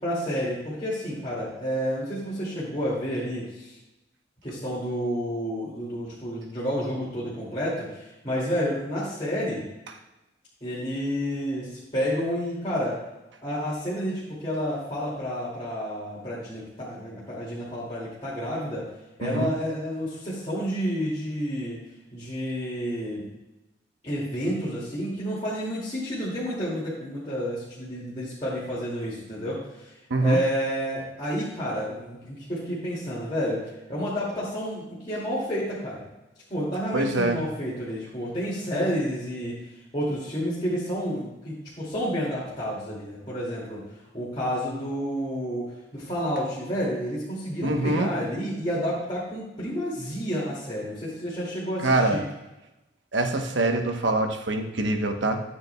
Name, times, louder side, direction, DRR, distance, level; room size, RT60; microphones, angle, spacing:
voice 1, 0.0-3.7 4.4-9.6 10.6-13.0 13.4-18.8 19.2-21.8 22.1-23.2 24.0-29.9 30.2-36.1 36.5-39.6 39.9-43.8 44.1-45.7 45.9-52.2, equal, 25° left, -9 dB, 2.4 m, -30 dB
voice 2, 30.1-30.4 36.9-37.4 47.6-48.1 51.8-52.2 53.1-55.4, right 2 dB, 75° right, 4 dB, 1.1 m, -24 dB
13.5 x 8.7 x 2.3 m, 1.0 s
head